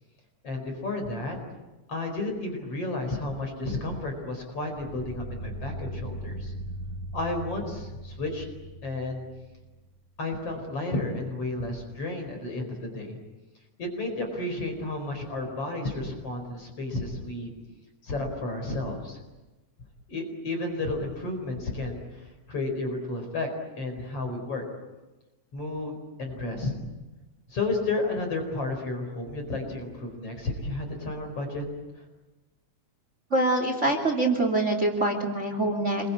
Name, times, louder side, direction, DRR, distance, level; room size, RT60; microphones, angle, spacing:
voice 1, 0.4-1.4 1.9-6.5 7.1-8.5 8.8-9.2 10.2-13.2 13.8-17.5 18.0-19.2 20.1-23.5 23.8-24.6 25.5-26.7 27.5-31.6, left 2 dB, 50° left, 4 dB, 5.6 m, -32 dB
sound 1, 4.8-9.9, right 1 dB, 60° right, 2.3 m, -39 dB
voice 2, 33.3-36.1, right 2 dB, 25° right, 4 dB, 2.9 m, -25 dB
27.5 x 22.5 x 8.7 m, 1.1 s
omnidirectional pair, 3.5 m